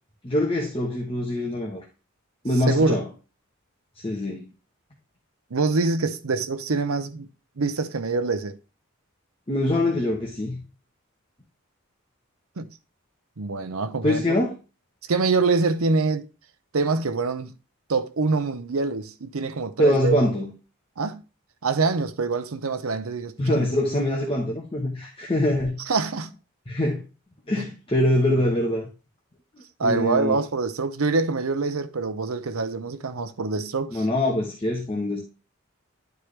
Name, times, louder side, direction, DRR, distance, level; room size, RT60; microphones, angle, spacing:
voice 1, 0.2-1.8 2.4-3.0 4.0-4.5 9.5-10.6 14.0-14.6 19.8-20.5 23.4-25.7 26.7-27.0 27.5-28.9 29.8-30.4 33.9-35.2, left 1 dB, 25° left, 1.1 m, -24 dB
voice 2, 2.7-3.0 5.5-7.3 7.6-8.6 12.6-12.7 13.4-14.3 15.1-16.3 16.7-17.5 17.9-20.2 21.0-21.2 21.6-23.7 25.9-26.3 27.6-27.7 29.8-34.0, right 4 dB, 90° right, 0.7 m, -25 dB
11.5 x 4.6 x 3.3 m
head